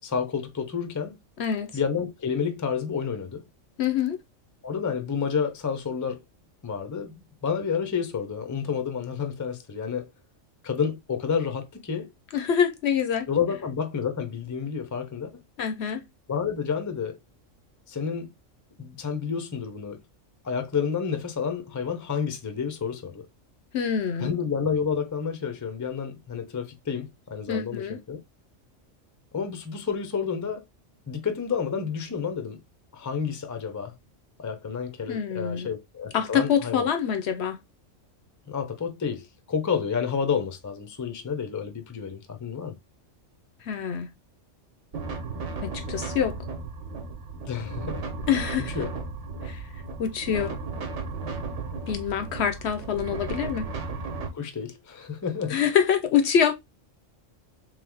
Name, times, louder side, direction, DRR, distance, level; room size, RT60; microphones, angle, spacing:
voice 1, 0.0-1.2 1.7-3.5 4.6-6.2 6.6-10.1 10.6-12.1 13.3-15.3 16.3-17.2 17.9-18.3 18.8-20.0 20.4-23.3 24.2-28.2 29.3-30.6 31.1-32.6 32.9-33.9 34.4-36.9 38.5-42.8 47.5-48.0 48.7-48.9 54.3-55.6, left 6 dB, 25° left, 0.4 m, -30 dB
voice 2, 1.4-1.7 3.8-4.2 12.3-13.3 15.6-16.0 23.7-24.3 27.5-28.0 35.1-35.7 36.1-37.6 43.6-44.1 45.6-46.4 48.3-48.8 49.4-49.6 50.0-50.6 51.9-53.7 55.5-56.5, left 8 dB, 65° left, 0.8 m, -25 dB
sound 1, 44.9-54.3, right 4 dB, 70° right, 1.3 m, -35 dB
3.4 x 3.4 x 3.4 m
omnidirectional pair, 1.3 m